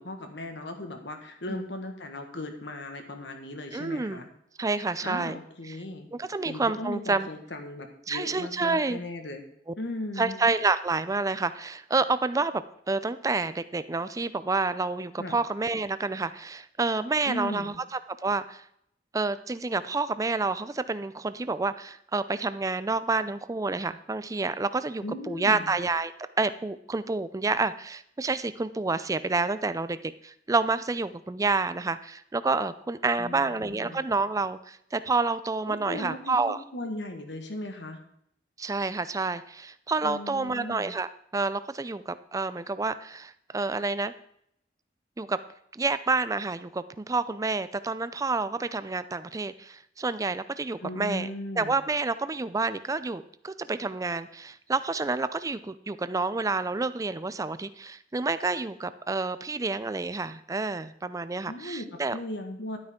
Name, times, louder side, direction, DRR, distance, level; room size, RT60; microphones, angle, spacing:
voice 1, 0.0-4.3 5.0-6.1 6.4-9.4 9.8-10.4 15.2-15.4 17.3-17.8 25.0-25.7 33.2-34.0 35.7-38.0 40.0-40.9 50.8-51.8 61.5-62.8, left 1 dB, 70° left, 5 dB, 1.5 m, -37 dB
voice 2, 3.7-4.2 4.6-5.4 6.2-7.3 8.1-9.0 10.2-17.7 18.2-18.6 19.1-26.1 26.4-30.0 30.2-36.6 38.6-44.1 45.2-45.4 45.7-51.3 51.6-62.2, right 3 dB, 20° right, 13 dB, 0.4 m, -29 dB
11.5 x 9.4 x 3.7 m, 0.71 s
head